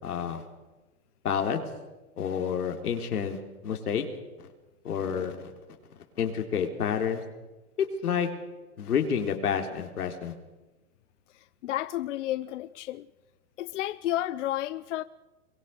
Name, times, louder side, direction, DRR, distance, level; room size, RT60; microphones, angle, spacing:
voice 1, 0.0-0.5 1.2-1.6 2.2-4.0 4.8-5.5 6.2-7.2 7.8-8.3 8.8-10.3, left 7 dB, 85° left, 3.8 m, -29 dB
voice 2, 11.3-13.1 13.6-15.0, left 13 dB, 55° left, 0.7 m, -32 dB
23.0 x 20.0 x 6.7 m
hypercardioid pair, 150°, 44 cm